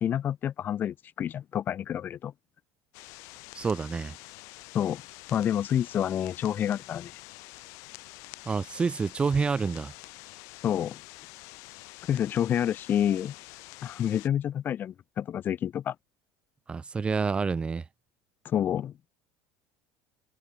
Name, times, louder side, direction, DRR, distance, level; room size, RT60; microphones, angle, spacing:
voice 1, 0.0-2.3 4.7-5.0 5.3-7.1 10.6-11.0 12.1-13.3 13.8-16.0 18.5-18.9, left 10 dB, 35° left, 1.6 m, -28 dB
sound 1, 2.9-14.3, left 28 dB, 70° left, 7.6 m, -47 dB
voice 2, 3.5-4.2 8.5-9.9 16.7-17.8, right 5 dB, 20° right, 2.1 m, -28 dB
supercardioid pair, 130°, 5 cm